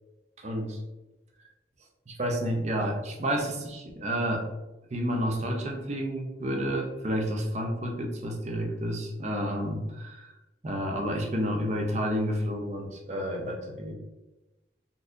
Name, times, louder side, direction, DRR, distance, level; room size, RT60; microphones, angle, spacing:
voice 1, 0.4-0.8 2.1-4.5 4.9-10.3 10.6-13.9, equal, 40° right, 1 dB, 0.6 m, -30 dB
3.9 x 2.6 x 2.4 m, 1.0 s
head